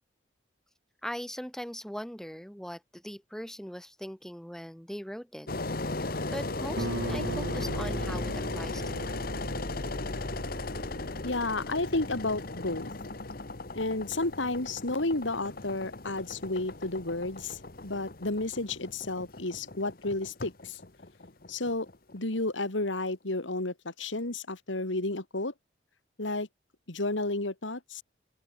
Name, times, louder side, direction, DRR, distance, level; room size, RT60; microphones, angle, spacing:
voice 1, 1.0-5.5 5.9-9.2, equal, 5° left, 1.4 m, -40 dB
Engine, 5.5-22.4, left 2 dB, 50° left, 1.5 m, -37 dB
Guitar, 6.8-12.2, right 2 dB, 80° right, 1.6 m, -40 dB
voice 2, 11.2-12.9 13.7-20.8 21.5-21.9 22.1-25.5 26.2-26.5 26.9-28.0, left 2 dB, 85° left, 2.7 m, -32 dB
open air
head